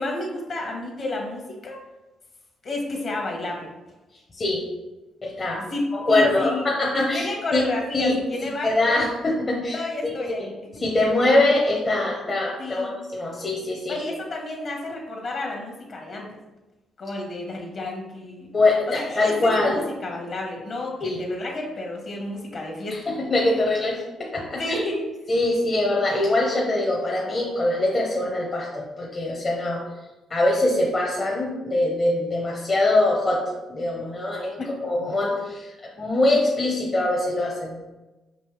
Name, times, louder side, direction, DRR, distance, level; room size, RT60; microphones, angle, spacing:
voice 1, 0.0-1.8 2.6-3.7 5.7-6.7 7.1-9.0 9.7-10.5 12.6-12.9 13.9-16.3 17.0-18.5 18.9-23.0 24.5-25.1 34.6-34.7, left 2 dB, 50° left, 0 dB, 1.2 m, -31 dB
voice 2, 5.2-5.6 5.9-7.6 7.9-8.1 8.6-10.5 10.8-14.0 18.5-19.8 21.0-21.2 22.9-24.8 25.3-29.8 30.3-33.4 33.7-34.5 34.8-37.8, left 2 dB, 35° left, -3 dB, 0.8 m, -23 dB
5.3 x 2.8 x 3.2 m, 1.1 s
cardioid pair, 90°, 0 cm